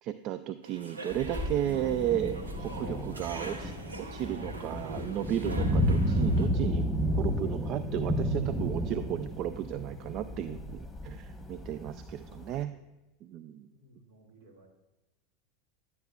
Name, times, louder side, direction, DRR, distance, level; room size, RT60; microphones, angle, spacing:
voice 1, 0.0-3.7 4.1-6.8 7.2-12.7 13.2-13.7, right 11 dB, 45° right, 12 dB, 0.3 m, -34 dB
sound 1, 0.6-6.5, right 2 dB, 90° right, 0.8 m, -43 dB
sound 2, 1.1-12.6, equal, 5° left, 1.3 m, -32 dB
voice 2, 13.7-14.7, right 1 dB, 70° right, 0 dB, 2.0 m, -58 dB
11.0 x 8.3 x 2.4 m, 1.0 s
hypercardioid pair, 85°, 0 cm